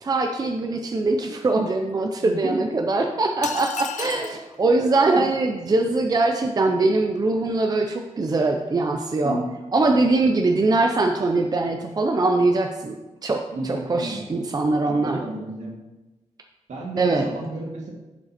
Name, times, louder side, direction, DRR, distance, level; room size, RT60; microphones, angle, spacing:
voice 1, 0.0-9.4 9.7-15.2 17.0-17.3, right 2 dB, 30° right, 4 dB, 0.5 m, -22 dB
voice 2, 2.2-2.6 3.8-4.3 4.8-5.2 9.2-9.5 13.5-14.2 14.9-15.7 16.7-17.9, right 2 dB, 75° right, -1 dB, 2.0 m, -33 dB
sound 1, 3.4-4.4, left 7 dB, 75° left, 0.5 m, -33 dB
10.5 x 5.3 x 4.2 m, 1.1 s
wide cardioid pair, 160°, 12 cm